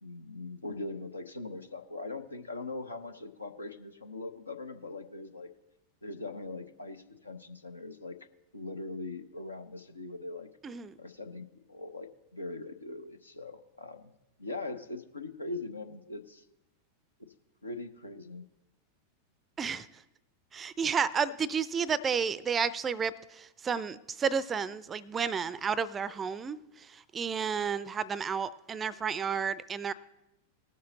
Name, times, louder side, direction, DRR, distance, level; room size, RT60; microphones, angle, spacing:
voice 1, 0.0-5.5 6.0-8.2 8.5-10.5 11.0-14.1 14.4-16.4 17.2-17.3 17.6-18.4, left 2 dB, 80° left, 7 dB, 0.8 m, -41 dB
voice 2, 10.6-11.0 19.6-20.0 20.5-29.9, right 6 dB, 20° right, 19 dB, 0.4 m, -32 dB
19.5 x 6.8 x 3.9 m, 0.91 s
figure-of-eight pair, 90°, 0 cm